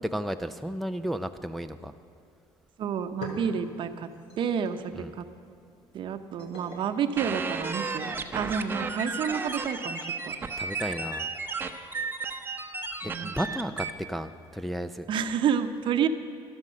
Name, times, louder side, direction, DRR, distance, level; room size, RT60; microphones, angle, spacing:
voice 1, 0.0-1.9 4.9-5.1 10.6-11.3 13.0-15.1, equal, ahead, 7 dB, 0.4 m, -33 dB
voice 2, 2.8-4.1 4.4-5.2 5.9-10.3 13.0-13.4 15.1-16.1, right 7 dB, 55° right, 9 dB, 0.8 m, -29 dB
sound 1, 3.0-8.1, left 2 dB, 75° left, 3.0 m, -47 dB
sound 2, 7.2-13.9, right 4 dB, 20° right, 0.8 m, -33 dB
12.5 x 11.5 x 6.3 m, 2.6 s
cardioid pair, 115°, 10 cm